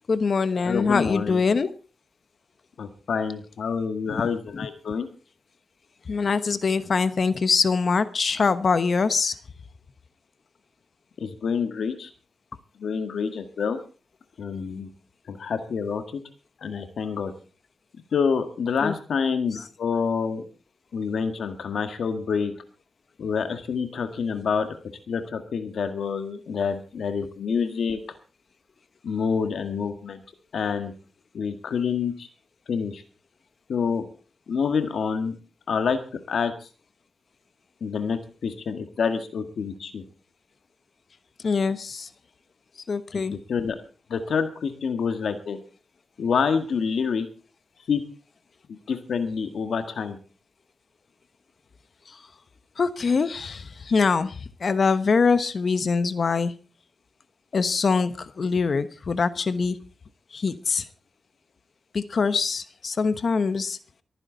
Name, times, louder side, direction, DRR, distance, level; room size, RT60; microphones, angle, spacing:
voice 1, 0.1-1.7 4.1-4.2 4.5-4.7 6.1-9.3 18.8-18.9 41.4-42.1 42.9-43.4 52.1-52.2 52.8-56.5 57.5-59.8 60.3-60.8 61.9-63.8, left 4 dB, 55° left, 13 dB, 1.1 m, -23 dB
voice 2, 0.6-1.4 2.8-5.1 11.2-12.1 12.8-13.8 14.4-14.9 15.3-16.2 16.6-17.3 18.1-20.4 20.9-22.5 23.2-24.7 25.1-28.0 29.0-30.2 30.5-30.9 31.3-32.3 32.7-33.0 33.7-34.0 34.5-35.4 35.7-36.0 36.3-36.5 37.8-40.0 43.1-43.8 44.1-45.6 46.2-47.3 47.9-48.0 48.9-50.2, left 6 dB, 75° left, 8 dB, 1.9 m, -27 dB
24.0 x 9.9 x 4.0 m, 0.35 s
cardioid pair, 80°, 0 cm